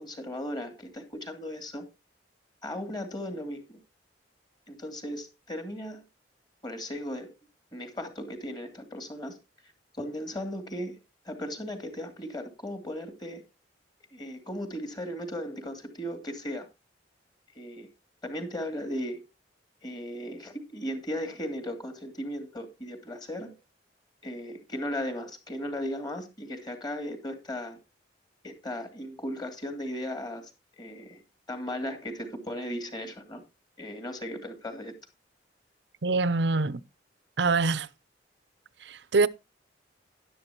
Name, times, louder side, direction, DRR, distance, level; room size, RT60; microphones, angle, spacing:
voice 1, 0.0-1.9 2.6-3.8 4.7-6.0 6.6-7.4 7.7-9.4 9.9-11.0 11.2-13.5 14.1-16.7 17.5-17.9 18.2-19.2 19.8-23.6 24.2-27.8 28.4-30.5 30.8-31.2 31.5-33.4 33.8-34.9, equal, 25° left, 2.7 m, -36 dB
voice 2, 36.0-36.8 37.4-37.9 38.8-39.3, right 3 dB, 70° right, 0.7 m, -24 dB
12.0 x 11.5 x 2.9 m
head